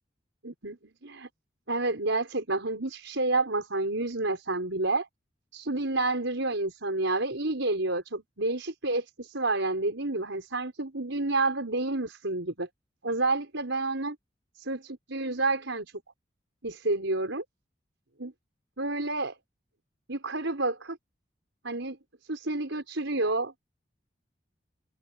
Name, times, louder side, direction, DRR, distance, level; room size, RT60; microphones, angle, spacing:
voice 1, 0.4-1.3 1.7-5.1 5.5-12.7 13.0-14.2 14.6-15.9 16.6-17.4 18.2-18.3 18.8-19.4 20.1-21.0 21.6-22.0 22.3-23.5, right 2 dB, 90° right, 5.5 m, -29 dB
open air
head